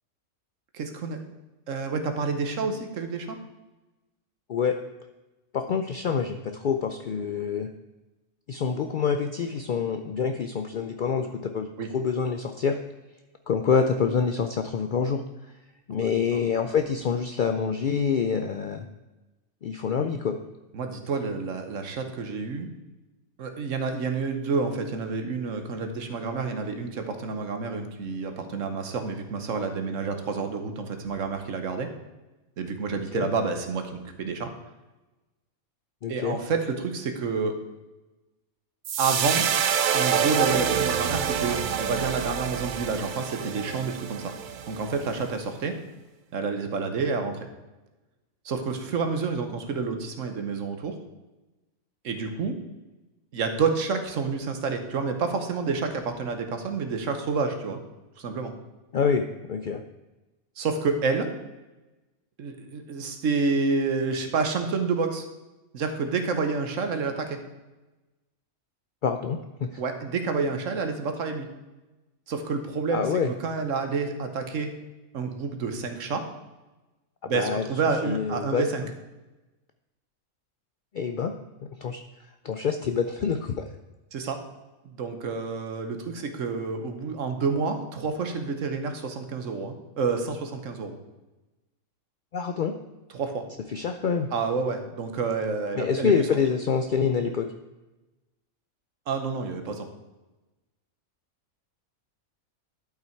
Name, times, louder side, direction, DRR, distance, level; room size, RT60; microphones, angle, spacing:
voice 1, 0.7-1.2 1.7-3.4 11.8-11.9 15.9-16.5 20.7-22.7 23.4-31.9 32.6-34.5 36.1-37.5 39.0-39.4 39.9-44.3 44.7-45.8 46.3-47.4 48.4-51.0 52.0-52.6 53.3-57.8 58.2-58.5 60.6-61.3 62.4-65.2 65.7-67.4 69.8-71.5 72.3-74.7 75.1-76.3 77.3-78.8 84.1-84.4 84.8-91.0 93.1-93.4 94.3-96.1 99.1-99.9, right 4 dB, 65° right, 6 dB, 1.3 m, -29 dB
voice 2, 5.5-7.7 8.5-12.8 13.5-15.2 15.9-18.9 19.6-20.4 32.9-33.3 36.0-36.4 58.9-59.8 69.0-69.8 72.9-73.3 77.3-77.6 78.0-78.6 80.9-81.3 81.6-82.0 82.4-83.7 92.3-92.7 93.7-94.3 95.8-97.5, left 6 dB, 75° left, 6 dB, 0.4 m, -26 dB
sound 1, 38.8-45.2, right 8 dB, 80° right, 0.4 m, -27 dB
11.5 x 5.7 x 4.5 m, 1.1 s
omnidirectional pair, 1.5 m